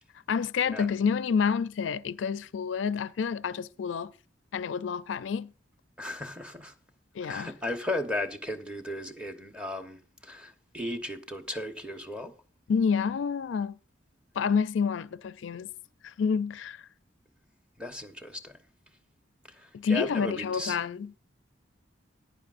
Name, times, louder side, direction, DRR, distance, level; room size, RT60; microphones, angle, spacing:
voice 1, 0.3-4.1 4.5-5.5 7.2-7.5 12.7-13.8 14.4-15.7 16.0-16.8 19.7-21.1, left 6 dB, 85° left, 0.4 m, -28 dB
voice 2, 6.0-6.7 7.2-12.3 17.8-18.6 19.5-20.8, left 1 dB, 5° right, 1.1 m, -36 dB
15.0 x 10.5 x 2.5 m
head